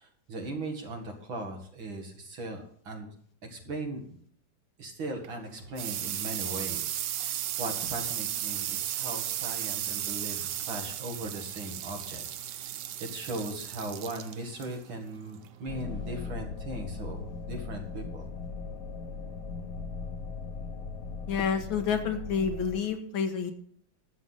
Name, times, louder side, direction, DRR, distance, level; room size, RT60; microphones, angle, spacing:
voice 1, 0.0-3.1 3.5-4.2 4.8-18.3, right 2 dB, 90° right, 3 dB, 2.9 m, -39 dB
sound 1, 5.0-16.3, right 11 dB, 70° right, 1.2 m, -35 dB
sound 2, 15.7-22.8, left 4 dB, 55° left, 1.3 m, -38 dB
voice 2, 21.3-23.5, left 6 dB, 85° left, 6 dB, 2.2 m, -29 dB
12.0 x 7.9 x 5.8 m, 0.62 s
omnidirectional pair, 2.1 m